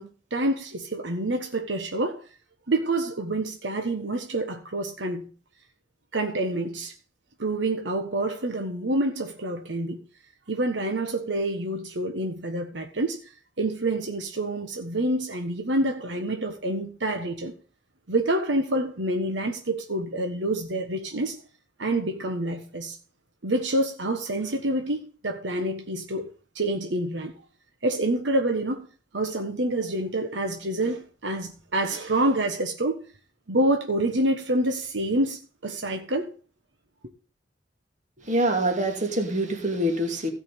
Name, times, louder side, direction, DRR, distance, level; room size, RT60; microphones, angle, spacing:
voice 1, 0.0-2.2 2.7-5.3 6.1-6.9 7.4-10.0 10.5-13.2 13.6-17.5 18.1-21.4 21.8-23.0 23.4-27.3 27.8-28.9 29.1-33.0 33.5-36.3, right 1 dB, 80° right, 1.3 m, -27 dB
voice 2, 38.2-40.3, right 1 dB, 45° right, 2.5 m, -25 dB
16.0 x 5.4 x 5.3 m
head